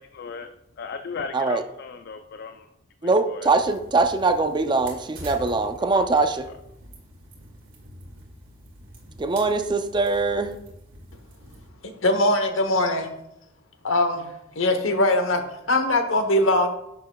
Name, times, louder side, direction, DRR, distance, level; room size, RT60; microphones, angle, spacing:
voice 1, 0.0-2.7 3.0-3.5 5.9-6.0, left 5 dB, 55° left, 0.4 m, -36 dB
voice 2, 3.0-6.5 9.2-10.6, right 3 dB, 20° right, 0.4 m, -22 dB
sound 1, 3.4-11.7, right 1 dB, 75° right, 2.2 m, -45 dB
voice 3, 11.8-13.1 13.8-14.3 14.5-16.7, left 1 dB, 75° left, 1.0 m, -21 dB
10.5 x 6.6 x 2.3 m
head